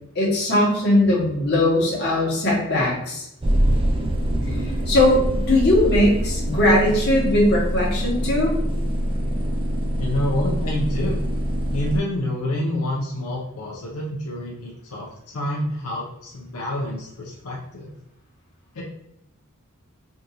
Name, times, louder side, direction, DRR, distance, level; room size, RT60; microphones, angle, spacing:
voice 1, 0.1-3.2 4.9-8.5, left 1 dB, 50° left, -4 dB, 1.2 m, -19 dB
sound 1, 3.4-12.0, equal, 25° right, 0.3 m, -24 dB
voice 2, 4.5-4.9 10.0-11.2 11.7-15.1 15.3-18.0 18.7-18.8, left 1 dB, 80° left, -3 dB, 0.6 m, -28 dB
3.5 x 2.6 x 2.8 m, 0.81 s
head